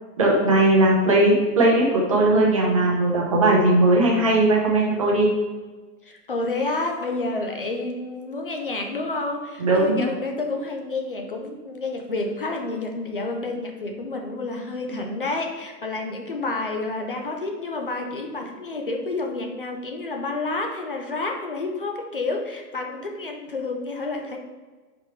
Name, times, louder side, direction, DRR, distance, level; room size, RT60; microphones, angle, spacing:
voice 1, 0.2-5.3 9.6-10.1, right 2 dB, 20° right, -3 dB, 0.6 m, -18 dB
voice 2, 6.1-24.4, left 2 dB, 35° left, 3 dB, 0.5 m, -29 dB
5.0 x 4.8 x 4.4 m, 1.3 s
hypercardioid pair, 180°, 49 cm